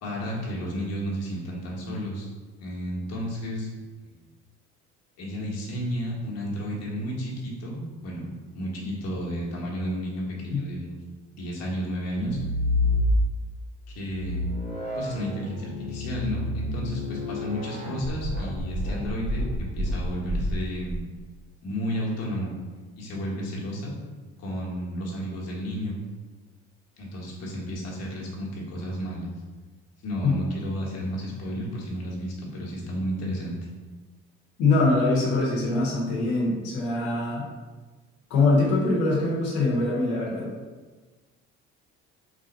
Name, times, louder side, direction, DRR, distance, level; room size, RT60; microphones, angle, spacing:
voice 1, 0.0-2.3 2.6-3.7 4.1-4.2 5.2-8.2 8.5-11.0 11.3-12.4 13.9-14.4 14.9-21.0 21.6-22.5 23.0-23.9 24.4-25.9 27.0-29.3 30.0-33.5, equal, 55° left, -4 dB, 1.2 m, -32 dB
sound 1, 12.1-13.5 14.0-21.0, left 1 dB, 35° right, 1.0 m, -29 dB
voice 2, 34.6-37.5 38.3-40.5, left 3 dB, 85° left, -6 dB, 0.9 m, -23 dB
3.3 x 2.5 x 3.9 m, 1.3 s
supercardioid pair, 80°, 31 cm